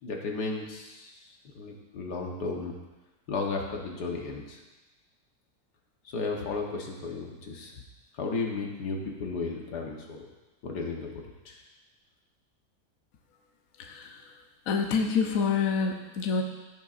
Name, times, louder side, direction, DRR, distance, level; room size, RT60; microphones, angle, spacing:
voice 1, 0.0-1.3 1.6-2.7 3.3-4.6 6.1-7.7 8.1-10.3 10.6-11.6, left 3 dB, 85° left, 0 dB, 1.7 m, -34 dB
voice 2, 13.8-14.4 14.7-16.4, left 5 dB, 60° left, 2 dB, 1.2 m, -27 dB
14.5 x 6.6 x 2.5 m, 1.1 s
omnidirectional pair, 1.7 m